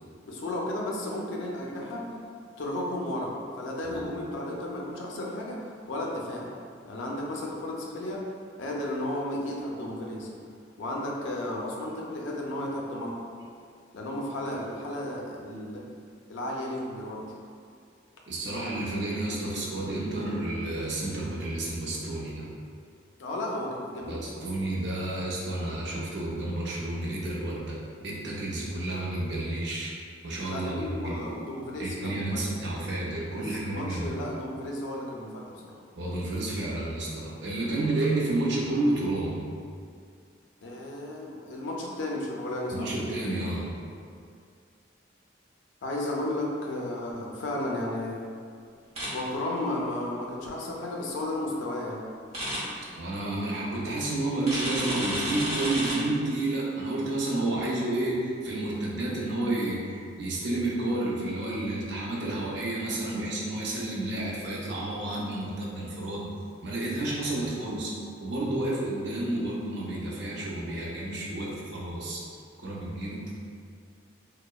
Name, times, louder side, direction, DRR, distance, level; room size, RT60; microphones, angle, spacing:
voice 1, 0.3-2.1 2.6-6.5 6.8-8.2 8.6-10.3 10.8-13.3 13.9-15.8 16.3-17.2 23.2-24.5 30.4-32.5 33.3-35.8 40.6-42.9 45.8-48.3 49.1-52.0, left 1 dB, 70° left, -2 dB, 0.4 m, -33 dB
voice 2, 18.3-22.5 24.1-29.9 30.2-31.2 31.8-34.2 36.0-39.4 42.7-43.7 52.9-66.3 66.6-67.9 68.2-72.2 72.6-73.4, right 2 dB, 60° right, -4 dB, 0.5 m, -30 dB
sound 1, 49.0-49.1 52.3-52.6 54.5-55.9, right 1 dB, 30° right, 0.8 m, -31 dB
2.8 x 2.0 x 2.2 m, 2.2 s
head